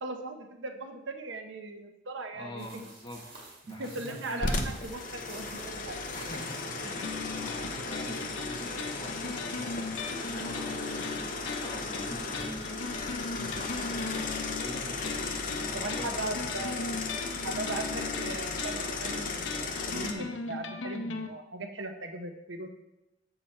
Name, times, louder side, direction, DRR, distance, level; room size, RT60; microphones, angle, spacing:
voice 1, 0.0-2.9 3.8-6.0 15.7-17.0 17.4-22.7, right 2 dB, 80° right, 5 dB, 0.9 m, -38 dB
voice 2, 2.3-4.8 6.1-10.0 10.2-14.0 14.4-15.2 15.5-16.7, left 1 dB, 25° left, -1 dB, 1.4 m, -45 dB
sound 1, 2.6-6.9, right 3 dB, 55° right, 2.4 m, -51 dB
sound 2, 4.4-20.1, left 3 dB, 45° left, 0.8 m, -35 dB
sound 3, 7.0-21.3, left 3 dB, 90° left, 0.7 m, -38 dB
7.3 x 6.9 x 4.4 m, 0.93 s
head